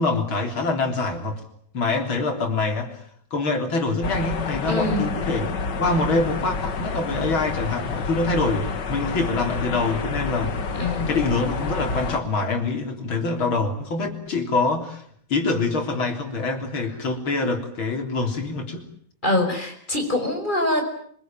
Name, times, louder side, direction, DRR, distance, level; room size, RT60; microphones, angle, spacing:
voice 1, 0.0-1.4 1.7-2.9 3.3-5.5 5.8-10.5 11.1-15.0 15.3-18.9, left 3 dB, 90° left, 4 dB, 4.3 m, -25 dB
sound 1, 4.0-12.2, left 4 dB, 60° left, 2.3 m, -29 dB
voice 2, 4.7-5.1 10.8-11.2 19.2-20.9, left 1 dB, 25° left, 4 dB, 5.7 m, -24 dB
24.5 x 22.5 x 9.0 m, 0.64 s
omnidirectional pair, 2.2 m